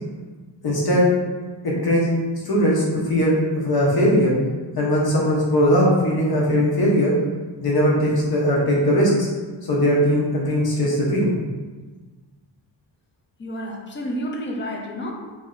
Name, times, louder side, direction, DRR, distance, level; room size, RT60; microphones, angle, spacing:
voice 1, 0.6-1.1 1.6-2.1 2.4-4.3 4.8-7.1 7.6-9.3 9.7-11.3, equal, 55° left, -4 dB, 1.0 m, -19 dB
voice 2, 13.4-15.1, equal, 25° left, 0 dB, 0.4 m, -30 dB
3.2 x 2.7 x 3.7 m, 1.4 s
wide cardioid pair, 180°, 46 cm